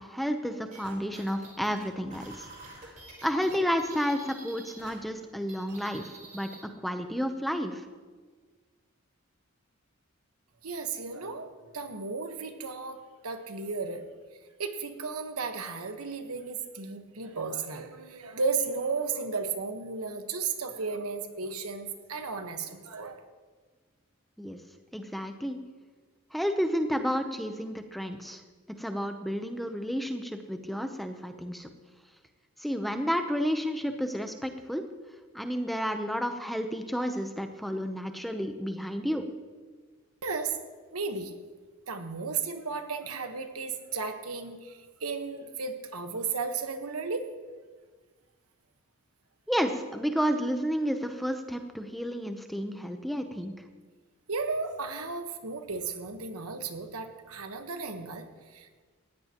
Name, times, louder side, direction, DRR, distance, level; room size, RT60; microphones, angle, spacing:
voice 1, 0.0-2.5 2.8-3.0 3.2-6.5 6.8-7.8 24.4-24.6 24.9-25.6 26.3-28.4 28.8-31.7 32.6-34.9 35.3-39.3 49.5-53.5, equal, ahead, 6 dB, 0.7 m, -31 dB
sound 1, 0.7-4.9 5.2-6.6, right 3 dB, 35° right, 4.2 m, -48 dB
voice 2, 10.6-14.1 14.6-23.2 40.2-40.6 40.9-41.4 41.9-47.3 54.3-58.8, right 4 dB, 90° right, 6 dB, 1.3 m, -34 dB
19.0 x 15.5 x 3.0 m, 1.4 s
head